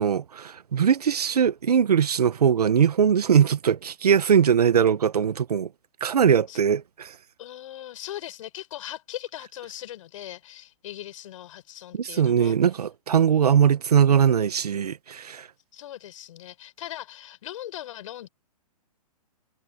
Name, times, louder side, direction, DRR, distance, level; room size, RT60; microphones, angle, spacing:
voice 1, 0.0-5.7 6.0-7.1 11.9-15.5, right 8 dB, 80° right, 1.6 m, -21 dB
voice 2, 7.4-12.6 13.1-13.6 15.7-18.3, left 12 dB, 55° left, 6.2 m, -39 dB
hypercardioid pair, 140°, 20 cm